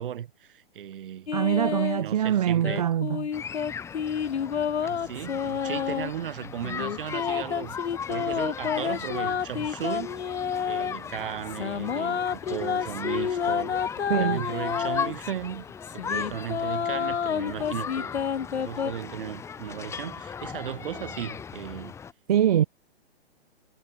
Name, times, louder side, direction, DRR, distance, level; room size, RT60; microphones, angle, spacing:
voice 1, 0.0-1.3 1.9-2.9 4.8-10.1 10.6-15.6 15.9-21.9, right 10 dB, 55° right, 3.8 m, -36 dB
sound 1, 1.3-2.0 2.6-6.1 6.6-10.9 11.4-15.3 15.8-18.9, left 7 dB, 85° left, 2.6 m, -29 dB
voice 2, 1.3-3.3 14.1-14.5 22.3-22.6, right 10 dB, 40° right, 0.4 m, -23 dB
sound 2, 3.3-22.1, left 7 dB, 10° left, 3.1 m, -37 dB
hypercardioid pair, 165°, 32 cm